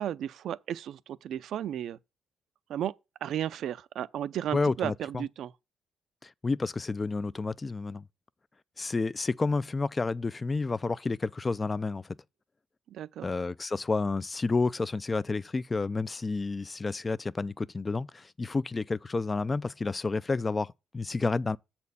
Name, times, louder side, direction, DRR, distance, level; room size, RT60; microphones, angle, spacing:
voice 1, 0.0-2.0 2.7-2.9 3.2-5.5 12.9-13.3, right 10 dB, 75° right, 0.5 m, -34 dB
voice 2, 4.5-5.2 6.2-8.0 8.8-12.2 13.2-21.6, left 3 dB, 25° left, 0.4 m, -30 dB
7.4 x 4.3 x 6.9 m
cardioid pair, 90°, 0 cm